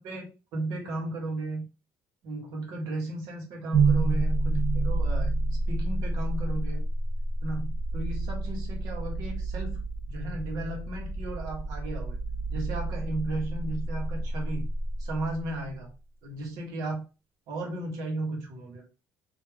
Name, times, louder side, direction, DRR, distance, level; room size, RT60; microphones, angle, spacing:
voice 1, 0.0-1.7 2.2-5.3 5.7-6.8 7.4-9.8 10.1-12.2 12.5-14.7 15.0-15.9 16.2-17.0 17.5-18.9, right 2 dB, 70° right, 0 dB, 1.5 m, -35 dB
sound 1, 3.7-15.8, right 2 dB, 50° right, 0.8 m, -29 dB
3.5 x 2.9 x 3.4 m, 0.30 s
cardioid pair, 175°, 6 cm